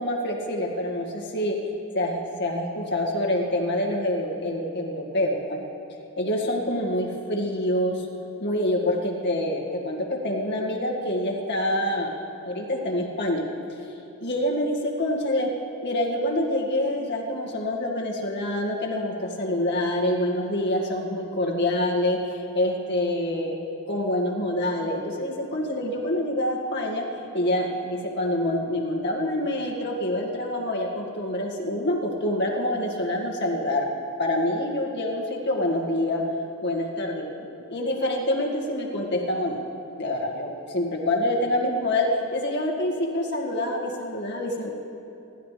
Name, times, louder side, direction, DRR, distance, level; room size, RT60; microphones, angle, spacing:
voice 1, 0.0-1.6 1.9-5.6 6.2-8.1 8.4-12.2 12.4-13.4 14.2-15.5 15.8-23.6 23.9-27.1 27.3-33.9 34.2-36.2 36.6-37.2 37.7-39.6 40.0-44.7, left 1 dB, 50° left, -1 dB, 2.1 m, -26 dB
27.5 x 12.0 x 3.4 m, 2.8 s
head